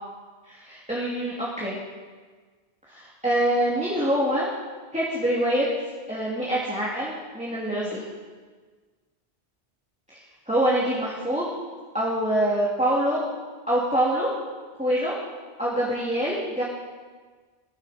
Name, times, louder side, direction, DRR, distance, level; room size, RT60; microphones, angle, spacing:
voice 1, 0.4-1.8 2.9-4.5 4.9-5.7 6.1-8.0 10.1-10.2 10.5-11.5 11.9-13.2 13.7-14.3 14.8-15.2 15.6-16.6, right 1 dB, 5° right, -7 dB, 2.8 m, -25 dB
21.5 x 11.5 x 5.2 m, 1.5 s
omnidirectional pair, 1.1 m